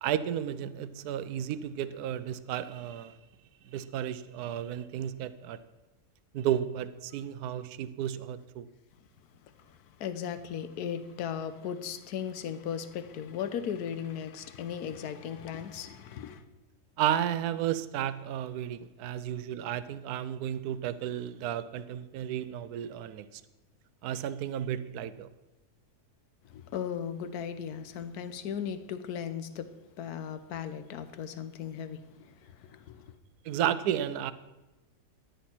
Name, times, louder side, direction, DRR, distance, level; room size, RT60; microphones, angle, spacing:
voice 1, 0.0-3.2 3.7-5.6 6.3-8.7 17.0-23.4 24.0-25.3 33.4-34.3, right 10 dB, 75° right, 1.1 m, -33 dB
voice 2, 9.4-16.4 26.4-33.1, left 8 dB, 75° left, 1.3 m, -37 dB
14.0 x 10.5 x 4.4 m
omnidirectional pair, 1.7 m